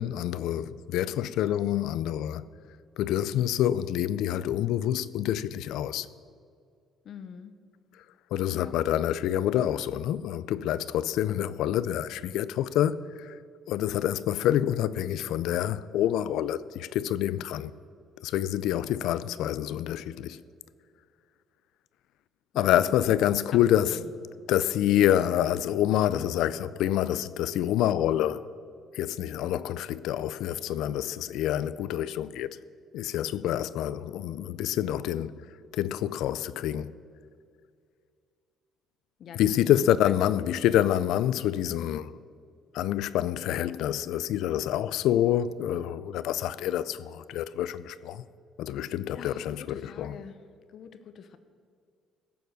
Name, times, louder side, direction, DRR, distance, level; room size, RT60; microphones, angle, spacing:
voice 1, 0.0-2.4 3.0-6.1 8.3-13.4 13.7-17.7 18.2-20.4 22.6-24.0 24.5-28.5 28.9-32.5 32.9-35.4 35.7-36.9 39.3-42.1 42.7-48.2 48.6-50.2, left 11 dB, 75° left, 0.4 m, -27 dB
voice 2, 7.0-7.5 8.5-8.7 22.5-22.7 23.5-23.6 23.9-24.1 39.2-40.3 49.1-50.4 50.7-51.4, left 7 dB, 50° left, 0.9 m, -45 dB
16.5 x 7.0 x 6.2 m
cardioid pair, 135°, 0 cm